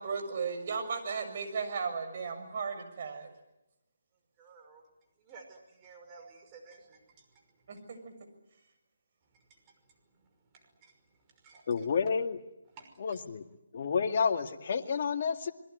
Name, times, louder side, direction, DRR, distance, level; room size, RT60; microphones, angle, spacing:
voice 1, 0.0-3.3 7.7-8.1, right 5 dB, 45° right, 6 dB, 6.7 m, -35 dB
voice 2, 4.4-4.8 5.3-7.0 10.8-10.9 11.4-11.6 12.8-13.2, right 4 dB, 25° right, 3 dB, 5.7 m, -53 dB
voice 3, 11.7-12.4 13.0-13.4 13.7-15.5, left 6 dB, 50° left, 5 dB, 2.2 m, -30 dB
27.0 x 22.0 x 9.6 m, 0.91 s
figure-of-eight pair, 155°, 0 cm